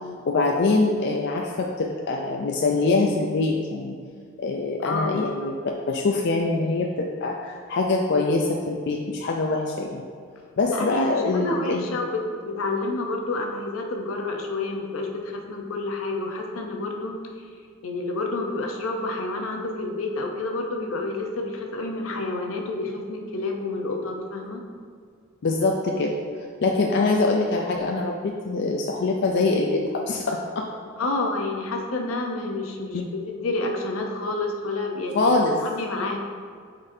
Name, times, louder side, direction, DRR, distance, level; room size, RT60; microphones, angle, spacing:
voice 1, 0.3-4.0 4.4-5.5 5.9-10.0 10.6-11.9 25.4-26.1 26.6-30.7 32.9-33.0 35.1-35.6, left 3 dB, 55° left, 0 dB, 0.4 m, -24 dB
voice 2, 10.7-17.2 17.8-24.6 31.0-35.3 35.6-36.2, left 2 dB, 80° left, 2 dB, 0.7 m, -29 dB
8.7 x 4.1 x 2.7 m, 2.1 s
head